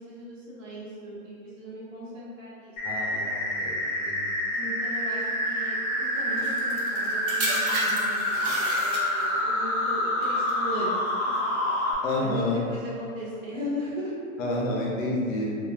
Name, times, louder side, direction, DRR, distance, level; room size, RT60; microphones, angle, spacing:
voice 1, 0.0-3.3 4.5-11.7 12.2-14.1, equal, 60° right, -8 dB, 1.0 m, -37 dB
voice 2, 2.8-3.8 4.0-4.3 12.0-12.6 14.4-15.6, left 1 dB, 65° left, -3 dB, 0.7 m, -29 dB
sound 1, 2.8-11.9, left 1 dB, 15° left, 0.4 m, -27 dB
sound 2, 6.4-9.4 10.2-10.5, right 1 dB, 40° right, 0.5 m, -32 dB
2.6 x 2.2 x 2.4 m, 2.3 s
hypercardioid pair, 150°, 42 cm